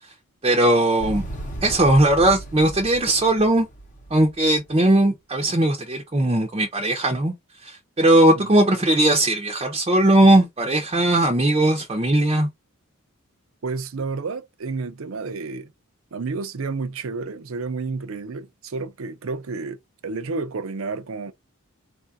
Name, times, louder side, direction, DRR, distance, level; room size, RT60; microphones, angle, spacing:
voice 1, 0.4-1.3 1.6-3.7 4.1-7.3 7.6-12.5, right 1 dB, 25° right, 0.6 m, -19 dB
Motorcycle, 1.0-4.9, right 1 dB, 35° left, 0.8 m, -36 dB
voice 2, 13.6-15.7 16.1-19.8 20.0-21.3, right 4 dB, 65° right, 0.5 m, -30 dB
4.1 x 2.4 x 2.6 m
head